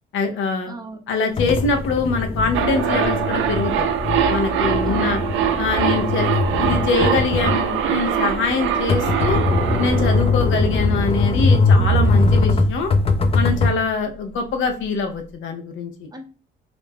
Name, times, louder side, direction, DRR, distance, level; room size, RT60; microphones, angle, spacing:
voice 1, 0.1-0.7 1.1-3.9 4.3-5.2 5.6-6.3 6.6-9.4 9.8-12.9 13.3-16.1, left 4 dB, 80° left, 5 dB, 0.6 m, -23 dB
voice 2, 0.7-1.0 4.8-5.7 13.6-13.9 16.1-16.3, right 3 dB, 20° right, 3 dB, 0.6 m, -37 dB
sound 1, 1.4-13.8, left 3 dB, 30° left, 0.4 m, -21 dB
sound 2, 2.5-11.3 11.6-11.7, right 8 dB, 80° right, 0.4 m, -23 dB
2.5 x 2.1 x 3.3 m, 0.37 s
cardioid pair, 90°, 20 cm